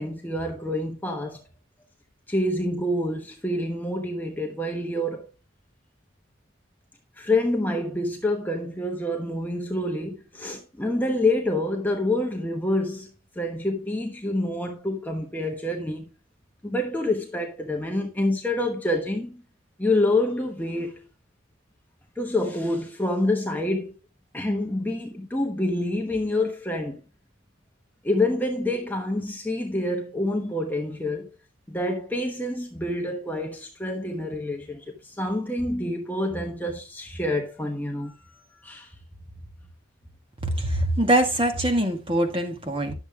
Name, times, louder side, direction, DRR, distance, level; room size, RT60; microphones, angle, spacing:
voice 1, 0.0-1.4 2.3-5.3 7.2-13.1 13.4-16.1 16.6-19.4 19.8-21.0 22.2-23.9 24.3-27.0 28.0-31.3 31.7-38.2 38.6-38.9, left 1 dB, 10° left, 1.0 m, -27 dB
voice 2, 40.4-42.9, right 1 dB, 25° right, 1.8 m, -23 dB
10.5 x 7.0 x 3.6 m
head